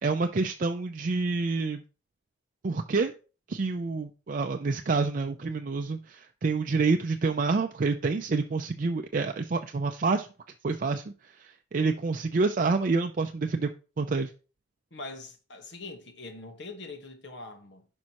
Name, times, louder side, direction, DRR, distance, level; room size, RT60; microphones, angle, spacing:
voice 1, 0.0-1.8 2.6-3.1 3.5-10.3 10.6-13.7 14.0-14.3, right 4 dB, 45° right, 0.5 m, -28 dB
voice 2, 14.9-17.9, left 3 dB, 65° left, 1.4 m, -43 dB
10.5 x 5.3 x 3.0 m
head